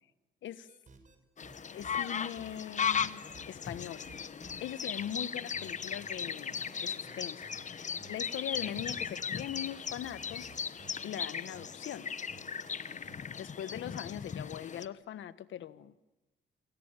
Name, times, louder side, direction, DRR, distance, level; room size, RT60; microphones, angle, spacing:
sound 1, 0.7-1.2 1.4-11.7 11.9-12.0 12.3-13.2, right 5 dB, 40° right, 6.0 m, -56 dB
sound 2, 1.4-14.9, left 7 dB, 40° left, 1.0 m, -37 dB
voice 1, 1.7-4.1 4.6-7.4 7.7-10.5 11.0-12.1 13.4-15.9, left 11 dB, 75° left, 14 dB, 1.3 m, -41 dB
27.0 x 22.5 x 9.1 m, 1.0 s
cardioid pair, 90°, 20 cm